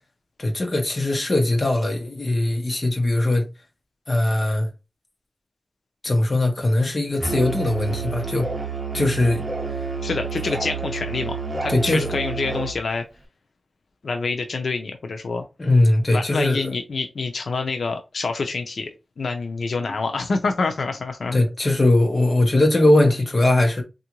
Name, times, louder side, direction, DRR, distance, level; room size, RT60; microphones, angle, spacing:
voice 1, 0.4-3.5 4.1-4.7 6.0-8.5 8.9-9.4 11.7-12.1 15.6-16.7 21.3-23.8, left 1 dB, 35° left, 1.0 m, -20 dB
Musical instrument, 7.2-12.8, right 4 dB, 30° right, 0.8 m, -29 dB
voice 2, 10.0-13.0 14.0-15.4 16.1-18.9 19.2-21.4, left 4 dB, 85° left, 0.5 m, -27 dB
3.5 x 2.4 x 2.9 m
wide cardioid pair, 110°, 0 cm